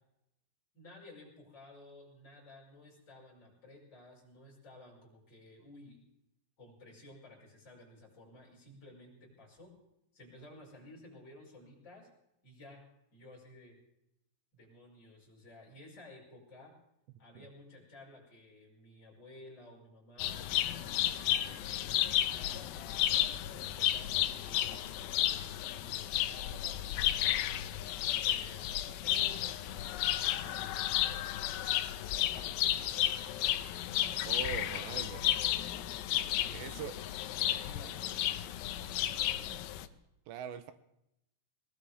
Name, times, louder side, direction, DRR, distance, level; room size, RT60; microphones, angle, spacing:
voice 1, 0.7-6.0 6.6-9.7 10.1-12.1 12.4-12.8 13.1-13.8 14.5-16.7 17.2-23.1 23.5-28.7 29.0-31.8 32.1-33.6 36.3-37.1 37.4-39.6, left 1 dB, 20° left, -4 dB, 5.9 m, -55 dB
sound 1, 20.2-39.9, left 13 dB, 85° left, 2.5 m, -33 dB
voice 2, 34.2-35.3 36.5-36.9 40.3-40.7, right 9 dB, 80° right, 10 dB, 2.7 m, -42 dB
20.5 x 19.5 x 3.5 m, 0.83 s
omnidirectional pair, 5.7 m